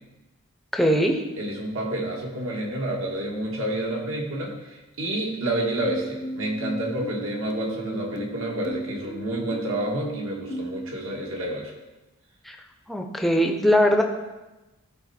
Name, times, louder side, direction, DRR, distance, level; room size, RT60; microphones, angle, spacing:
voice 1, 0.7-1.2 12.5-12.6 12.9-14.0, equal, ahead, 3 dB, 0.6 m, -20 dB
voice 2, 1.4-11.7, right 1 dB, 70° right, -1 dB, 1.8 m, -29 dB
sound 1, 5.8-10.9, right 2 dB, 85° left, 1.0 m, -36 dB
13.0 x 4.4 x 4.3 m, 1.1 s
head